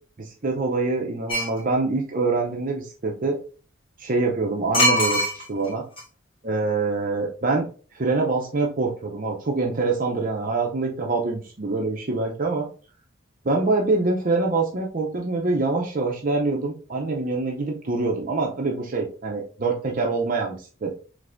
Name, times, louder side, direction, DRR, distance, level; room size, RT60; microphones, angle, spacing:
voice 1, 0.2-3.4 4.0-5.8 6.4-7.7 7.9-12.7 13.4-20.9, right 3 dB, 40° right, 1 dB, 0.6 m, -25 dB
sound 1, 1.3-1.6 4.7-5.7 6.0-6.1, equal, 25° left, 1.7 m, -21 dB
5.2 x 3.3 x 2.5 m, 0.39 s
head